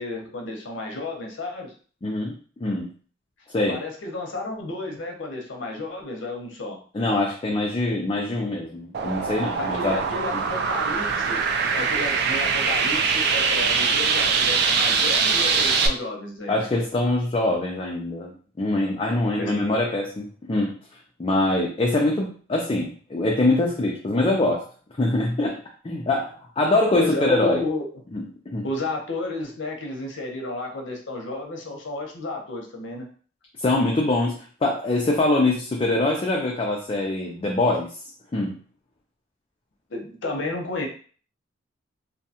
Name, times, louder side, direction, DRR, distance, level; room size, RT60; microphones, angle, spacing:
voice 1, 0.0-1.7 3.7-6.8 9.6-11.4 11.7-16.6 19.4-19.5 26.9-27.8 28.6-33.1 39.9-40.9, left 2 dB, 75° left, 2 dB, 0.7 m, -32 dB
voice 2, 2.0-2.3 2.6-2.9 3.5-3.8 6.9-10.0 10.3-10.4 16.5-18.3 18.6-20.7 21.2-24.6 25.0-25.6 25.8-27.6 28.1-28.6 33.6-37.9 38.3-38.6, left 2 dB, 30° left, -1 dB, 0.4 m, -23 dB
sound 1, 8.9-15.9, right 5 dB, 60° right, 0.4 m, -22 dB
2.7 x 2.2 x 2.7 m, 0.42 s
head